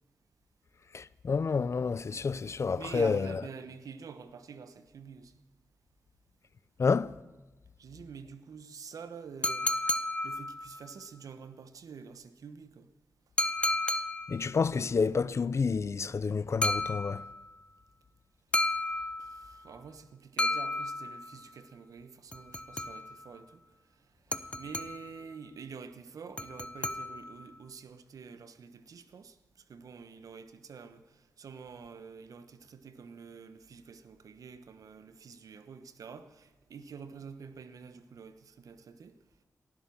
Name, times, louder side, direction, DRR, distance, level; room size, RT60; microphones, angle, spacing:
voice 1, 0.9-3.3 6.8-7.2 14.3-17.3, left 5 dB, 55° left, 0.5 m, -29 dB
voice 2, 2.8-5.3 7.8-12.9 19.2-23.6 24.3-29.4 29.7-39.2, right 6 dB, 80° right, 1.1 m, -47 dB
sound 1, 9.4-10.9 13.4-14.5 16.6-17.5 18.5-19.6 20.4-21.4 22.3-23.3 24.3-25.2 26.4-27.5, left 1 dB, 20° left, 0.9 m, -32 dB
18.0 x 11.0 x 7.1 m
cardioid pair, 55°, 6 cm